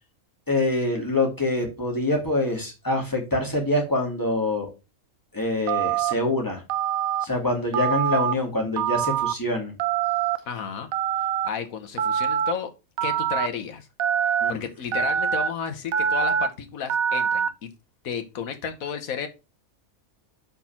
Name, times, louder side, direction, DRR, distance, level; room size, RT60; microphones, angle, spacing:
voice 1, 0.5-4.7 5.3-6.6 7.2-9.7 14.4-14.6, left 2 dB, 15° left, 2.4 m, -25 dB
Telephone, 5.7-6.1 6.7-7.2 7.7-8.3 8.8-9.3 9.8-10.4 10.9-11.5 12.0-12.5 13.0-13.5 14.0-14.5 14.9-15.5 15.9-16.5 16.9-17.5, right 8 dB, 75° right, 1.0 m, -24 dB
voice 2, 10.4-10.9 11.4-12.7 13.0-13.9 14.5-17.7 18.0-19.3, left 6 dB, 75° left, 1.5 m, -32 dB
5.4 x 4.6 x 5.8 m
omnidirectional pair, 1.5 m